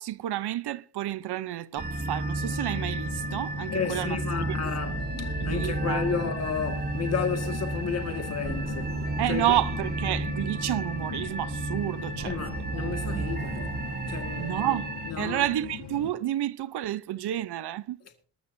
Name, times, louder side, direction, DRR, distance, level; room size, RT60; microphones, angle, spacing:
voice 1, 0.0-4.2 4.5-4.6 5.4-6.0 9.2-12.4 14.4-18.0, right 13 dB, 60° right, 0.8 m, -30 dB
sound 1, 1.8-15.1, right 2 dB, 20° right, 1.2 m, -32 dB
sound 2, 2.4-16.1, left 8 dB, 65° left, 2.4 m, -41 dB
voice 2, 3.7-9.0 9.3-9.6 12.2-14.7 15.1-15.5, left 6 dB, 35° left, 1.9 m, -32 dB
22.0 x 13.0 x 2.7 m
wide cardioid pair, 170°, 45 cm